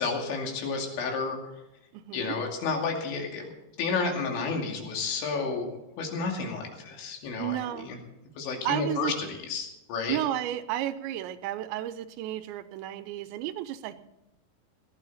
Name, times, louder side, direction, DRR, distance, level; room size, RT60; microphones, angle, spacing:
voice 1, 0.0-1.4 2.1-3.5 3.8-5.7 6.0-7.6 7.9-8.0 8.4-9.1 9.5-10.2, left 4 dB, 80° left, 1 dB, 4.8 m, -31 dB
voice 2, 1.9-2.4 7.4-7.9 8.6-9.1 10.1-13.9, right 12 dB, 85° right, 12 dB, 3.0 m, -32 dB
18.5 x 12.0 x 4.1 m, 0.94 s
omnidirectional pair, 5.2 m